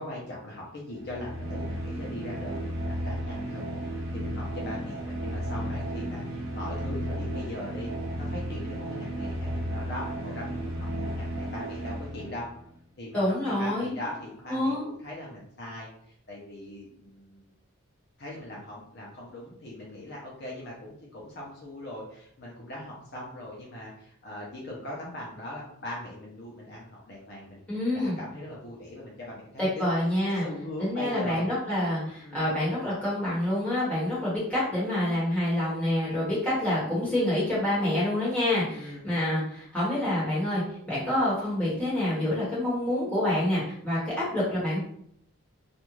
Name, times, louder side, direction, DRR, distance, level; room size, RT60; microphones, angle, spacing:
voice 1, 0.0-7.9 8.2-12.5 13.0-13.2 13.6-15.9 16.3-17.5 18.2-27.6 27.9-29.8 30.2-31.5 32.2-32.5 38.7-39.0, left 1 dB, 50° left, -4 dB, 0.6 m, -40 dB
sound 1, 0.9-12.6, equal, 80° right, 0.8 m, -34 dB
voice 2, 13.1-14.0 14.5-14.8 27.7-28.1 29.6-30.4 30.8-44.8, left 1 dB, 5° left, -9 dB, 1.2 m, -27 dB
2.5 x 2.3 x 3.0 m, 0.69 s
head